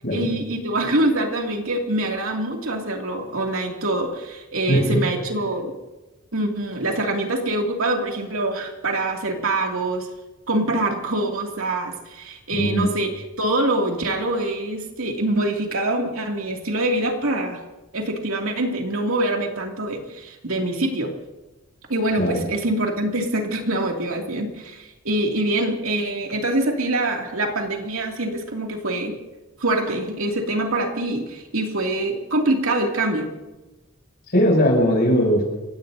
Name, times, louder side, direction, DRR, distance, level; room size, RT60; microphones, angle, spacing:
voice 1, 0.1-5.7 6.3-10.1 10.5-17.6 17.9-21.1 21.9-29.2 29.6-33.3, right 1 dB, 75° right, 1 dB, 2.6 m, -24 dB
voice 2, 4.7-5.0 12.5-12.9 22.2-22.4 34.3-35.4, equal, 50° left, -1 dB, 7.1 m, -19 dB
30.0 x 17.0 x 2.8 m, 1.1 s
head